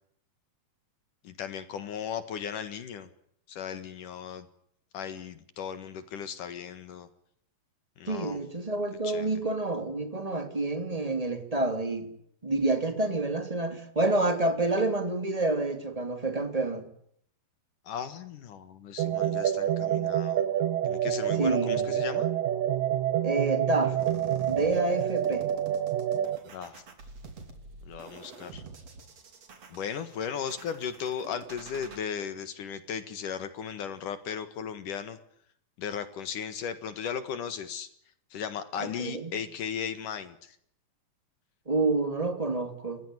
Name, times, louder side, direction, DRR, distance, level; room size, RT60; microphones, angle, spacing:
voice 1, 1.2-3.1 3.5-4.5 4.9-7.1 8.0-8.4 9.0-9.3 17.9-20.4 20.8-22.3 26.5-26.8 27.9-28.6 29.7-35.2 35.8-37.9 38.3-40.6, left 7 dB, 70° left, 3.1 m, -36 dB
voice 2, 8.1-12.1 12.4-16.9 21.4-21.9 23.2-24.0 24.5-25.5 38.8-39.3 41.7-43.0, right 2 dB, 10° right, 2.7 m, -28 dB
sound 1, 19.0-26.4, right 11 dB, 75° right, 2.9 m, -27 dB
sound 2, 24.0-32.0, right 4 dB, 50° right, 4.1 m, -47 dB
30.0 x 16.0 x 9.9 m
omnidirectional pair, 4.0 m